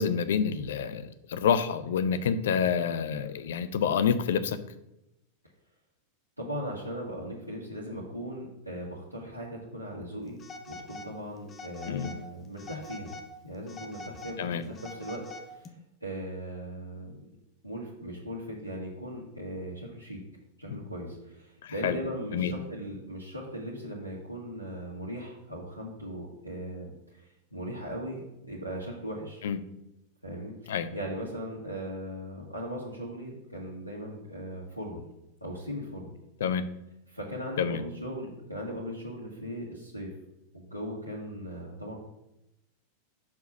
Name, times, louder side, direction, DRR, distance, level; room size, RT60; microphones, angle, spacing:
voice 1, 0.0-4.6 11.9-12.1 14.4-14.6 20.7-20.8 21.6-22.0 22.3-22.5 29.4-29.6 30.7-30.9 36.4-36.6 37.6-37.8, left 7 dB, 60° left, 12 dB, 0.6 m, -28 dB
voice 2, 6.4-10.4 10.7-13.1 13.4-15.7 16.0-17.2 17.6-20.2 20.6-28.2 28.5-29.4 30.2-35.0 35.4-36.1 37.1-40.1 40.5-41.9, equal, 90° left, -5 dB, 1.4 m, -38 dB
Telephone, 10.4-11.1 11.5-12.2 12.6-13.3 13.7-15.7, left 2 dB, 25° left, 0.9 m, -44 dB
6.0 x 4.7 x 6.2 m, 0.88 s
figure-of-eight pair, 90°, 0 cm